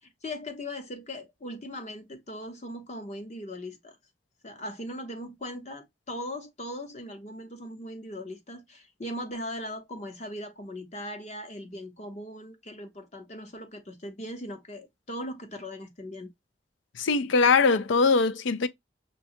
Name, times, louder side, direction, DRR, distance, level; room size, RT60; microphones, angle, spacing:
voice 1, 0.2-4.0 4.4-16.3, left 1 dB, 35° left, 0.9 m, -39 dB
voice 2, 17.0-18.7, left 4 dB, 80° left, 0.5 m, -22 dB
6.2 x 2.3 x 2.7 m
head